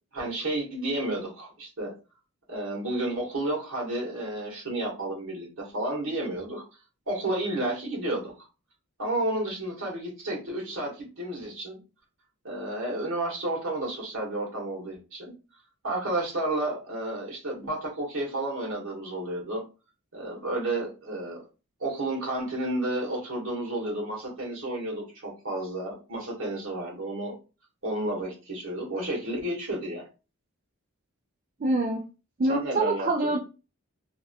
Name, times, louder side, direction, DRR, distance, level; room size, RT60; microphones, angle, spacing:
voice 1, 0.1-1.9 2.5-6.6 7.1-8.3 9.0-11.8 12.4-15.3 15.8-19.6 20.1-21.4 21.8-27.3 27.8-30.0 32.5-33.3, right 1 dB, 65° right, -2 dB, 1.6 m, -31 dB
voice 2, 31.6-32.0 32.4-33.4, right 2 dB, 40° right, 1 dB, 0.3 m, -25 dB
3.5 x 2.7 x 2.3 m, 0.32 s
head